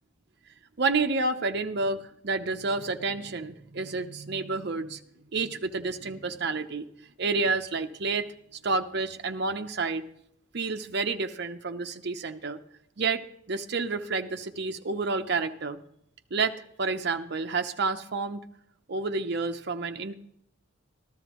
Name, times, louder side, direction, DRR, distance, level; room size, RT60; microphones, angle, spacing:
voice 1, 0.8-5.0 5.3-6.9 7.2-8.3 8.6-10.1 10.5-12.6 13.0-15.8 16.3-18.4 18.9-20.1, right 4 dB, 60° right, 6 dB, 0.8 m, -29 dB
14.0 x 13.0 x 3.0 m, 0.70 s
head